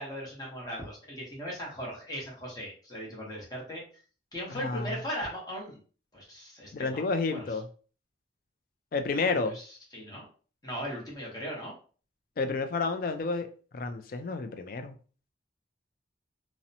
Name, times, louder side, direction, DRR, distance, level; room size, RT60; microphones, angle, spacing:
voice 1, 0.0-3.8 4.3-5.8 6.1-7.4 9.5-9.7 9.9-10.2 10.6-11.7, equal, 20° left, 0.8 m, -38 dB
voice 2, 4.5-4.9 6.7-7.7 8.9-9.6 12.4-13.5 13.7-14.9, left 4 dB, 50° left, 0.3 m, -30 dB
2.7 x 2.0 x 2.6 m
head